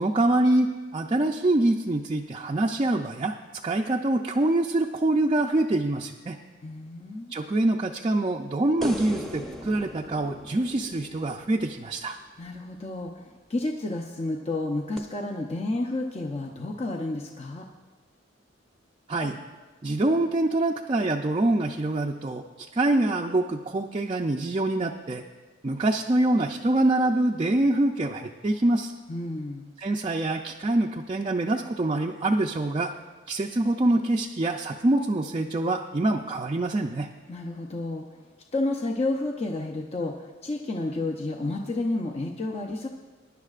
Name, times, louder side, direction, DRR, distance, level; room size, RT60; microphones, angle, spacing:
voice 1, 0.0-3.3 3.6-6.4 7.3-12.2 19.1-19.4 19.8-22.4 22.7-25.2 25.6-28.9 29.8-32.9 33.3-37.1, right 2 dB, 30° right, 0 dB, 0.5 m, -25 dB
voice 2, 6.6-7.3 12.4-17.6 29.1-29.7 37.3-38.1 38.5-42.9, left 2 dB, 35° left, 1 dB, 0.7 m, -31 dB
sound 1, 8.8-12.1 15.0-15.1, equal, ahead, 0.8 m, -38 dB
22.0 x 10.5 x 2.5 m, 1.3 s
head